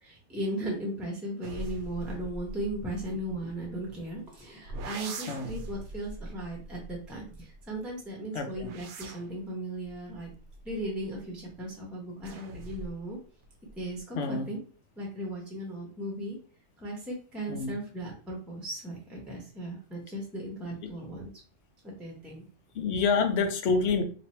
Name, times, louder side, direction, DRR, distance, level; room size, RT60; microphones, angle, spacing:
voice 1, 0.0-10.3 10.6-13.2 13.7-14.6 15.0-16.4 16.8-21.3 21.8-22.5 22.9-23.0, right 1 dB, ahead, -2 dB, 0.9 m, -37 dB
sound 1, 1.4-4.1 4.7-7.8 8.4-11.4 12.2-13.1 13.4-14.0, right 2 dB, 65° right, 0.8 m, -43 dB
voice 2, 8.3-8.7 14.1-14.5 17.5-17.7 20.8-20.9 22.7-24.0, left 4 dB, 60° left, 6 dB, 0.8 m, -27 dB
2.9 x 2.6 x 4.3 m, 0.40 s
omnidirectional pair, 1.3 m